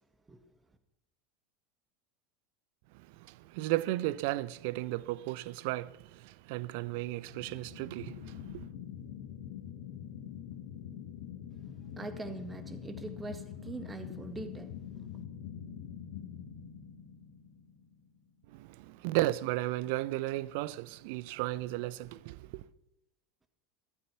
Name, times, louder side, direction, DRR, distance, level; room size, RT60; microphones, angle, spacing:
voice 1, 3.2-8.7 18.5-22.6, right 17 dB, 55° right, 0.6 m, -34 dB
sound 1, 7.3-18.2, left 9 dB, 60° left, 1.4 m, -45 dB
voice 2, 12.0-15.1, right 3 dB, 15° right, 1.9 m, -43 dB
15.5 x 13.5 x 5.9 m
figure-of-eight pair, 80°, 0 cm